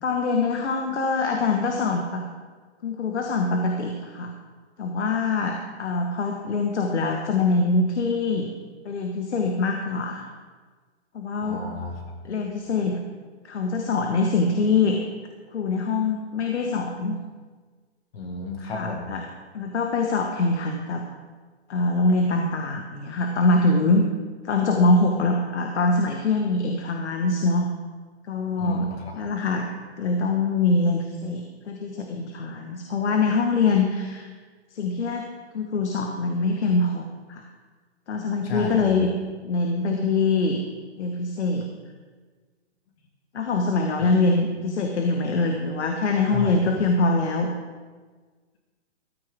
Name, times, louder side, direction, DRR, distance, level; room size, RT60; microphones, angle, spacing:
voice 1, 0.0-2.2 2.8-4.3 4.8-8.5 8.8-10.3 11.1-11.6 12.3-13.0 13.4-15.0 15.5-17.2 18.6-19.2 19.5-21.0 21.7-24.0 24.4-27.7 28.3-28.8 29.2-29.7 30.0-34.3 34.7-35.3 35.5-37.4 38.1-39.1 39.4-40.6 41.0-41.7 43.3-47.5, left 3 dB, 80° left, 3 dB, 1.6 m, -24 dB
voice 2, 11.4-12.3 18.1-19.1 28.6-29.3 38.4-38.9 44.0-44.1 46.3-46.8, left 4 dB, 60° left, 2 dB, 2.0 m, -33 dB
14.5 x 13.0 x 3.7 m, 1.4 s
hypercardioid pair, 145°, 34 cm